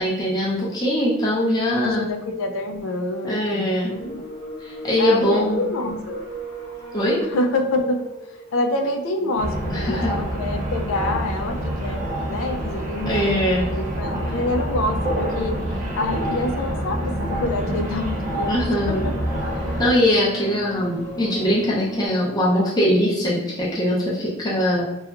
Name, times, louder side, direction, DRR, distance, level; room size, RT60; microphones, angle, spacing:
voice 1, 0.0-2.1 3.2-4.0 4.6-5.6 6.9-7.2 9.7-10.1 13.1-13.7 18.5-19.0 19.8-24.8, equal, 20° left, -7 dB, 0.5 m, -21 dB
voice 2, 1.8-4.3 5.0-6.2 7.3-12.0 12.3-18.6 18.9-19.1, left 2 dB, 80° left, 4 dB, 0.4 m, -27 dB
sound 1, 3.9-22.1, right 1 dB, 35° left, 0.9 m, -37 dB
sound 2, 9.4-19.9, right 1 dB, 40° right, 0.5 m, -27 dB
2.8 x 2.3 x 2.3 m, 0.88 s
head